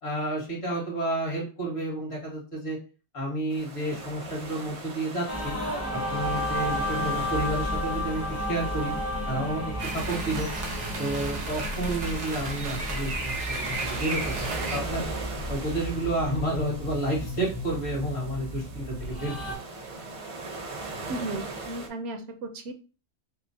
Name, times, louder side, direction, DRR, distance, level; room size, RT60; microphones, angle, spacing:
voice 1, 0.0-2.8 3.1-5.5 5.9-8.9 9.3-10.5 11.0-15.0 15.5-19.6, right 1 dB, 65° left, -3 dB, 1.9 m, -31 dB
sound 1, 3.5-21.9, right 3 dB, 40° right, 0.5 m, -41 dB
sound 2, 5.3-19.5, equal, 15° left, 0.6 m, -33 dB
sound 3, 9.8-14.8, right 3 dB, 90° right, 1.2 m, -34 dB
voice 2, 21.1-22.7, right 2 dB, 70° right, 7 dB, 0.8 m, -35 dB
5.4 x 2.0 x 2.6 m, 0.35 s
omnidirectional pair, 1.2 m